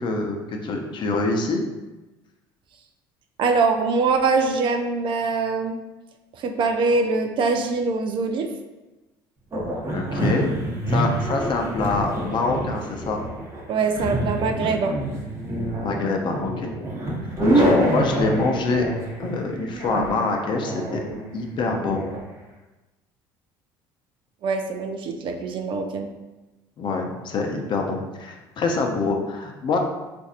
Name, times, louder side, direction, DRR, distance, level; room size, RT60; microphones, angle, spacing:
voice 1, 0.0-1.6 9.9-10.6 10.9-13.2 15.8-16.7 17.5-18.8 19.2-21.0 21.3-22.0 26.8-29.8, left 3 dB, 45° left, 2 dB, 0.6 m, -25 dB
voice 2, 3.4-5.8 6.3-8.5 13.7-15.0 24.4-26.1, right 4 dB, 50° right, 5 dB, 0.4 m, -23 dB
sound 1, 9.5-22.2, right 1 dB, 30° right, 0.9 m, -26 dB
4.0 x 2.6 x 2.5 m, 1.1 s
hypercardioid pair, 75°, 11 cm